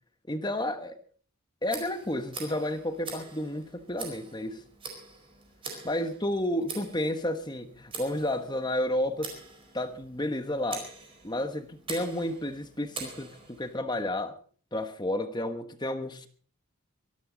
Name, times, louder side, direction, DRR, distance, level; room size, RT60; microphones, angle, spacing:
voice 1, 0.3-1.0 1.6-4.6 5.8-9.3 9.7-10.9 11.2-14.4 14.7-16.3, left 1 dB, 20° left, 8 dB, 1.3 m, -31 dB
Tick, 1.7-13.7, right 4 dB, 25° right, 4.5 m, -44 dB
24.0 x 12.5 x 4.0 m, 0.43 s
head